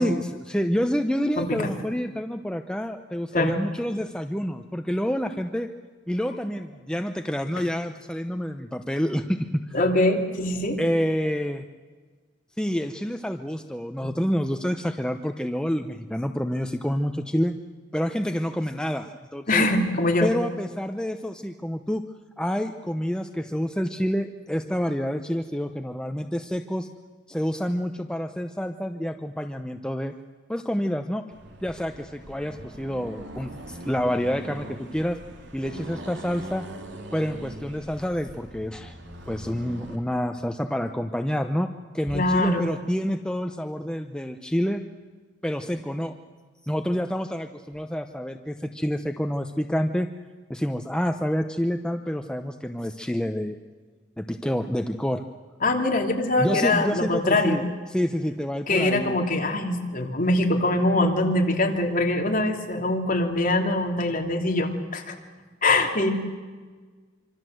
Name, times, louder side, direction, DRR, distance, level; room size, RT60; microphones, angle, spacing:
voice 1, 0.0-5.7 6.1-9.8 10.8-11.6 12.6-17.5 17.9-19.6 20.2-22.0 22.4-26.9 27.3-30.1 30.5-31.2 31.6-35.2 35.5-36.7 37.1-39.0 39.3-41.7 41.9-44.8 45.4-46.2 46.6-50.1 50.5-53.6 54.2-55.2 56.4-59.2, equal, 5° left, 6 dB, 0.8 m, -28 dB
voice 2, 1.4-1.8 3.3-3.5 9.7-10.8 14.0-14.1 19.5-20.3 42.1-42.6 55.6-57.6 58.7-65.1 65.6-66.1, left 2 dB, 45° left, 2 dB, 3.1 m, -23 dB
Accelerating revving vroom, 31.3-40.0, right 1 dB, 60° right, 3.3 m, -41 dB
26.0 x 25.5 x 7.9 m, 1.4 s
head